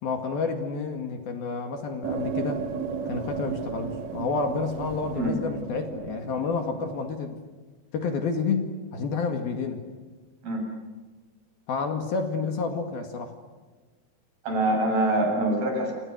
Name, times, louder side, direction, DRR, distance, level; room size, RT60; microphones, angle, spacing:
voice 1, 0.0-2.6 3.1-7.4 7.9-9.8 11.7-13.4, left 4 dB, 60° left, 5 dB, 3.7 m, -29 dB
sound 1, 2.0-7.2, right 6 dB, 75° right, 1.6 m, -34 dB
voice 2, 14.4-15.9, right 1 dB, 55° right, 2 dB, 9.2 m, -24 dB
29.0 x 28.5 x 6.5 m, 1.4 s
omnidirectional pair, 5.2 m